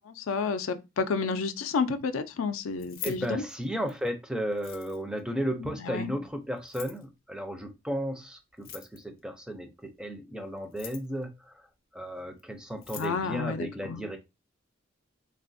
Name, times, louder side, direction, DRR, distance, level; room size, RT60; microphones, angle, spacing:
voice 1, 0.3-3.4 5.9-6.1 13.0-14.0, left 5 dB, 90° left, 0.4 m, -30 dB
Keys jangling, 2.7-4.1 4.5-5.2 6.6-7.0 8.5-9.2 10.6-11.2 12.4-12.5 12.7-13.2, left 7 dB, 50° left, 0.6 m, -43 dB
voice 2, 3.0-11.6 11.9-14.2, equal, 5° right, 0.4 m, -34 dB
3.3 x 2.3 x 2.5 m
head